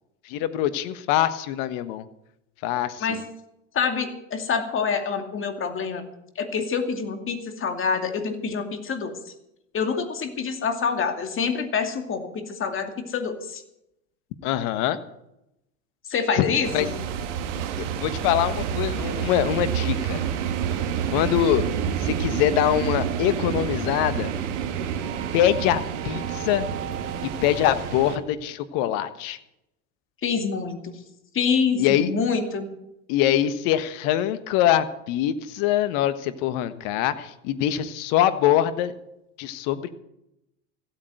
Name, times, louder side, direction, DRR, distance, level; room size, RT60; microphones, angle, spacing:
voice 1, 0.2-2.0 2.6-3.2 14.4-15.0 16.4-16.9 18.0-20.2 21.1-21.6 22.0-24.3 25.3-26.7 27.2-29.4 31.8-32.1 33.1-38.9 39.4-39.9, left 11 dB, 60° left, 12 dB, 1.4 m, -23 dB
voice 2, 3.7-6.0 6.4-9.3 9.7-13.6 16.1-17.0 30.2-31.0 31.3-32.7, left 5 dB, 35° left, 6 dB, 2.5 m, -26 dB
sound 1, 16.6-28.2, right 8 dB, 70° right, 1.8 m, -28 dB
16.0 x 8.8 x 7.8 m, 0.83 s
hypercardioid pair, 95°, 37 cm